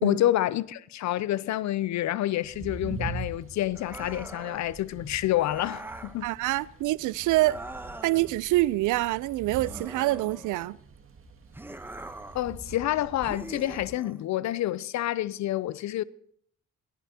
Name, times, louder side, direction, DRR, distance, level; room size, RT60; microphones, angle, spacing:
voice 1, 0.0-6.3 12.3-16.0, left 14 dB, 65° left, 0.5 m, -28 dB
sound 1, 2.4-13.9, right 4 dB, 45° right, 2.2 m, -43 dB
sound 2, 3.7-4.7 5.4-6.2 7.3-8.4 9.6-10.8 11.5-12.5 13.2-14.2, right 1 dB, 5° right, 0.9 m, -42 dB
voice 2, 6.2-7.6 8.0-10.8, right 18 dB, 85° right, 0.5 m, -26 dB
18.5 x 13.0 x 2.8 m
cardioid pair, 90°, 30 cm